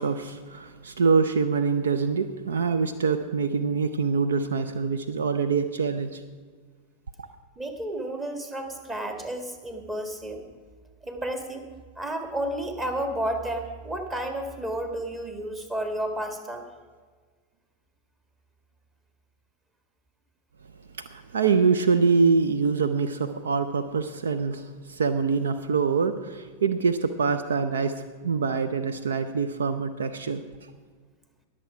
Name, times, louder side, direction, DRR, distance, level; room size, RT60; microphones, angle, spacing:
voice 1, 0.0-6.2 7.2-7.3 21.0-30.4, right 5 dB, 65° right, 10 dB, 0.6 m, -25 dB
voice 2, 7.6-10.4 11.0-11.7 12.0-16.7, right 1 dB, 15° right, 6 dB, 1.8 m, -31 dB
21.5 x 7.5 x 4.9 m, 1.5 s
figure-of-eight pair, 90°, 0 cm